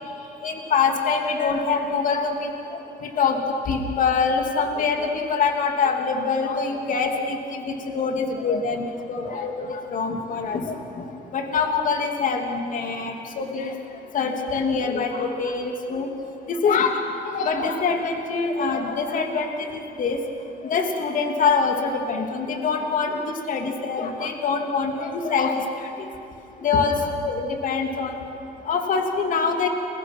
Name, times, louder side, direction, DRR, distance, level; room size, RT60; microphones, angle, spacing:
voice 1, 0.4-2.5 3.0-13.7 14.1-16.1 16.5-16.9 17.2-20.2 20.6-23.2 23.5-25.6 26.0-26.1 26.6-28.1 28.7-29.7, left 5 dB, 50° left, 3 dB, 2.7 m, -24 dB
30.0 x 23.0 x 6.1 m, 2.7 s
cardioid pair, 110°, 17 cm